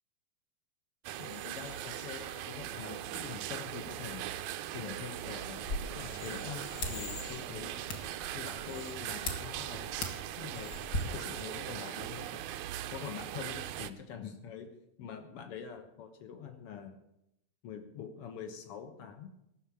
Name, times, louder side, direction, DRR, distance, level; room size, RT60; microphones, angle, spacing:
sound 1, 1.0-13.9, right 12 dB, 80° right, 1.8 m, -40 dB
voice 1, 1.2-4.3 4.7-5.7 5.9-7.8 8.3-10.0 10.4-12.4 12.9-17.0 17.6-19.3, left 7 dB, 60° left, 7 dB, 1.6 m, -45 dB
sound 2, 5.5-11.0, left 2 dB, 45° left, 1.5 m, -41 dB
sound 3, 5.9-12.4, left 4 dB, 90° left, 0.8 m, -52 dB
15.0 x 6.6 x 8.7 m, 0.80 s
omnidirectional pair, 4.0 m